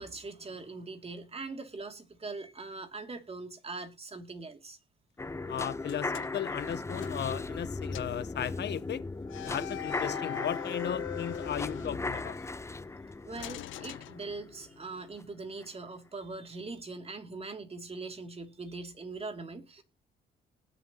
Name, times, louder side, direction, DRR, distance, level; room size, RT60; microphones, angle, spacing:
voice 1, 0.0-4.8 9.4-9.5 13.2-19.8, right 3 dB, 30° right, 2.8 m, -42 dB
sound 1, 5.2-15.2 15.6-15.7, left 3 dB, 15° left, 0.6 m, -37 dB
voice 2, 5.5-9.0 9.4-12.4, left 9 dB, 60° left, 1.1 m, -36 dB
sound 2, 5.8-7.6 7.9-8.2 9.3-12.5 13.4-14.8, left 16 dB, 75° left, 0.5 m, -42 dB
20.0 x 7.0 x 3.0 m
cardioid pair, 90°, 20 cm